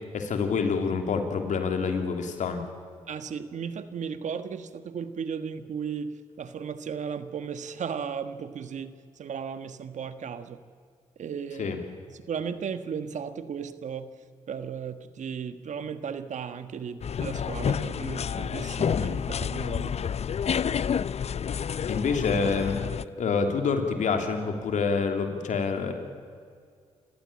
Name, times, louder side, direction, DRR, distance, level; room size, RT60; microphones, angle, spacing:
voice 1, 0.1-2.6 11.6-11.8 21.9-22.8 23.2-25.9, left 5 dB, 75° left, 5 dB, 3.2 m, -27 dB
voice 2, 3.1-8.9 9.2-10.6 11.2-11.8 12.1-14.1 14.5-20.0, right 7 dB, 70° right, 11 dB, 1.5 m, -35 dB
sound 1, 17.0-23.0, left 7 dB, 55° left, 0.6 m, -29 dB
28.0 x 15.5 x 8.7 m, 2.1 s
supercardioid pair, 45°, 13 cm